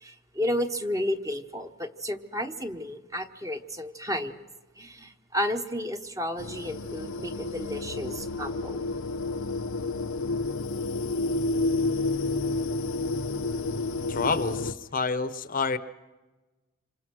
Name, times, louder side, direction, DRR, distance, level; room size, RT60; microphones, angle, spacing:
voice 1, 0.0-4.4 4.8-8.8, equal, 15° right, 7 dB, 1.0 m, -32 dB
sound 1, 6.4-14.7, left 3 dB, 75° left, 0.8 m, -30 dB
voice 2, 14.1-15.8, left 4 dB, 40° left, 13 dB, 0.8 m, -28 dB
27.0 x 26.5 x 6.2 m, 1.2 s
head